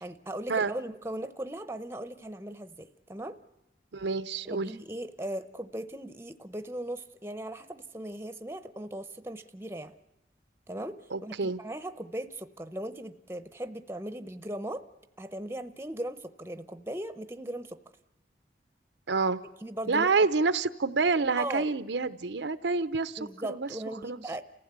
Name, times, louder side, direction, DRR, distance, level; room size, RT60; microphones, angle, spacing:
voice 1, 0.0-3.4 4.4-9.9 10.7-14.8 15.2-17.8 19.6-20.1 21.4-21.7 23.2-24.4, right 1 dB, 15° right, 11 dB, 0.8 m, -38 dB
voice 2, 3.9-4.7 11.1-11.6 19.1-19.4 19.9-23.7 24.0-24.2, right 4 dB, 85° right, 12 dB, 0.8 m, -28 dB
29.5 x 15.5 x 8.2 m, 0.95 s
head